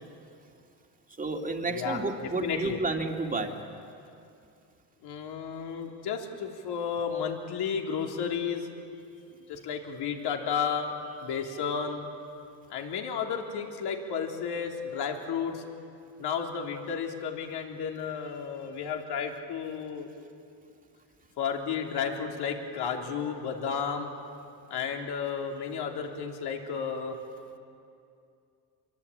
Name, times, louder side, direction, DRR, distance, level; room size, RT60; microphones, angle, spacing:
voice 1, 1.2-3.6, right 3 dB, 20° right, 3 dB, 2.4 m, -31 dB
voice 2, 1.7-2.8 5.0-8.7 9.5-12.0 12.7-15.6 16.2-20.1 21.4-24.1 24.7-27.2, left 6 dB, 65° left, 2 dB, 3.4 m, -32 dB
25.5 x 22.5 x 8.6 m, 2.5 s
cardioid pair, 110°, 43 cm